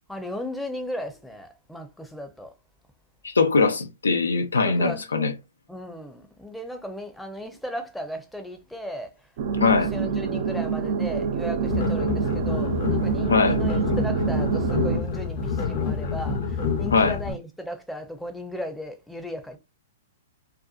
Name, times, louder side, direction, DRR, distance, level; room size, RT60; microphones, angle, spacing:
voice 1, 0.1-2.5 4.6-5.4 5.7-9.1 9.6-19.6, equal, 5° left, 0.6 m, -36 dB
voice 2, 3.2-5.3 9.6-9.9 13.3-13.6 16.9-17.2, left 4 dB, 85° left, 0.6 m, -21 dB
sound 1, 9.4-15.0, right 6 dB, 55° right, 0.4 m, -26 dB
sound 2, 11.7-17.3, left 5 dB, 60° left, 0.9 m, -28 dB
2.5 x 2.3 x 2.4 m
hypercardioid pair, 115°, 0 cm